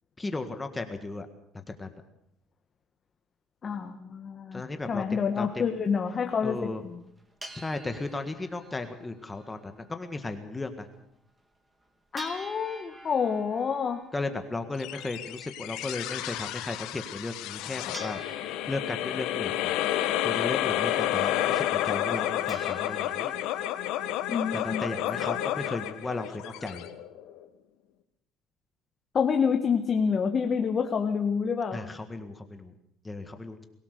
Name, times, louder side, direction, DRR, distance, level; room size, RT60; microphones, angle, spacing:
voice 1, 0.2-1.3 1.5-1.9 4.5-5.6 6.4-6.8 7.5-10.9 14.1-19.7 20.2-23.3 24.5-26.8 31.7-32.7 33.0-33.6, left 3 dB, 15° left, 7 dB, 1.8 m, -35 dB
voice 2, 3.6-4.6 4.9-7.0 12.1-14.0 24.3-24.8 29.1-31.9, left 6 dB, 35° left, 4 dB, 1.7 m, -28 dB
sound 1, 4.8-5.0 5.5-5.6 5.8-6.0 6.7-6.8 7.0-10.2 10.4-10.5 10.9-11.0 11.4-11.5 12.2-16.7 17.4-17.5 17.9-20.9 21.3-21.4 21.7-22.2 22.5-24.3, right 1 dB, 15° right, 3.2 m, -48 dB
sound 2, 14.8-27.4, left 13 dB, 80° left, 1.6 m, -30 dB
23.0 x 17.0 x 6.8 m, 0.75 s
cardioid pair, 110°, 0 cm